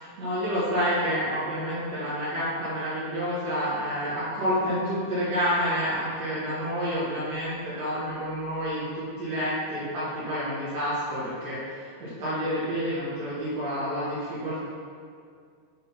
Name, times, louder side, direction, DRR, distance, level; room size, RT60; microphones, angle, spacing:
voice 1, 0.0-14.7, equal, 55° right, -11 dB, 2.0 m, -29 dB
7.8 x 5.3 x 5.6 m, 2.2 s
omnidirectional pair, 5.5 m